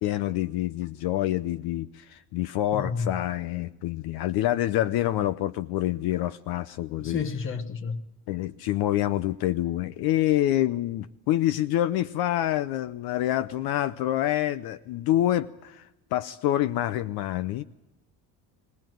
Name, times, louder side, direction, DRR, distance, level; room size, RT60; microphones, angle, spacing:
voice 1, 0.0-7.2 8.3-17.6, left 13 dB, 65° left, 0.7 m, -27 dB
voice 2, 2.7-3.1 7.0-8.0, left 5 dB, 30° left, 1.2 m, -30 dB
21.0 x 18.0 x 9.2 m
cardioid pair, 175°, 40 cm